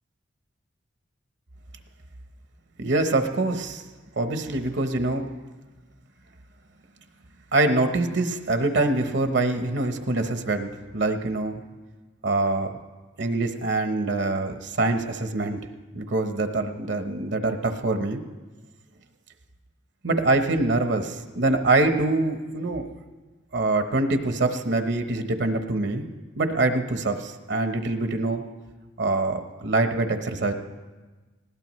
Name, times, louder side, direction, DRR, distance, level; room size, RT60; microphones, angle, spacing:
voice 1, 2.8-3.8 4.2-5.3 7.5-11.6 12.2-12.7 13.2-15.6 15.9-18.2 20.0-22.8 23.5-26.0 26.4-28.4 29.0-30.5, right 2 dB, 60° right, 7 dB, 0.9 m, -24 dB
19.5 x 17.0 x 3.1 m, 1.3 s
head